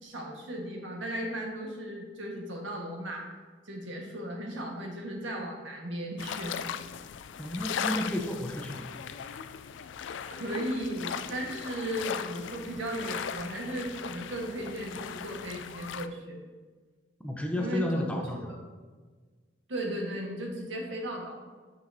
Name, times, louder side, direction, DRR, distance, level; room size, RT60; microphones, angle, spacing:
voice 1, 0.0-3.3 3.6-6.7 10.3-16.4 17.5-18.6 19.7-21.4, right 1 dB, 85° right, 0 dB, 1.5 m, -36 dB
sound 1, 6.2-16.1, left 8 dB, 70° left, 0.4 m, -38 dB
voice 2, 7.4-8.8 17.2-18.5, left 1 dB, 5° left, 2 dB, 0.7 m, -32 dB
9.2 x 6.1 x 2.8 m, 1.4 s
head